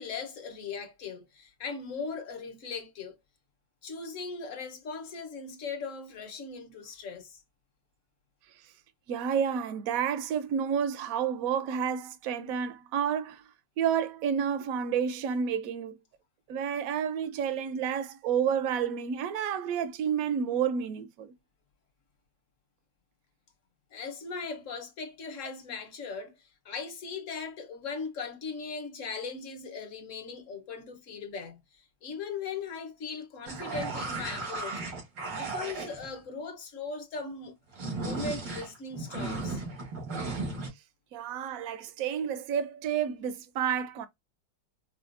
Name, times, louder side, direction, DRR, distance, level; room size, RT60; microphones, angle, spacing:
voice 1, 0.0-3.2 3.8-7.4 23.9-34.8 35.3-37.5 38.0-39.6, left 4 dB, 50° left, 1.2 m, -39 dB
voice 2, 9.1-13.4 13.8-16.0 16.5-21.3 41.1-44.1, right 8 dB, 65° right, 0.9 m, -30 dB
sound 1, 33.5-36.1 37.7-40.7, right 3 dB, 90° right, 2.4 m, -35 dB
5.1 x 2.3 x 2.5 m
omnidirectional pair, 1.9 m